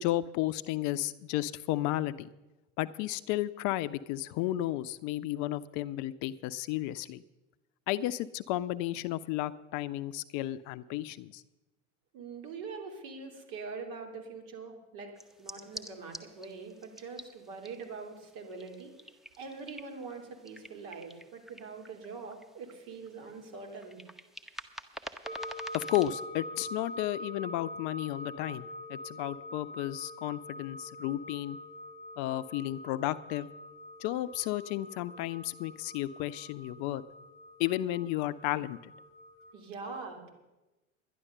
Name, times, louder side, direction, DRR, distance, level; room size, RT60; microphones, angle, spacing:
voice 1, 0.0-2.3 2.8-7.2 7.9-11.4 25.7-31.6 32.2-33.5 34.0-37.0 37.6-38.9, left 14 dB, 50° left, 16 dB, 0.6 m, -33 dB
voice 2, 12.1-18.9 19.4-24.0 39.5-40.3, right 4 dB, 60° right, 3 dB, 3.0 m, -43 dB
sound 1, 15.2-26.2, equal, ahead, 0.9 m, -49 dB
sound 2, 25.2-39.5, left 1 dB, 20° right, 4.6 m, -45 dB
11.0 x 11.0 x 6.7 m, 1.0 s
hypercardioid pair, 75°, 39 cm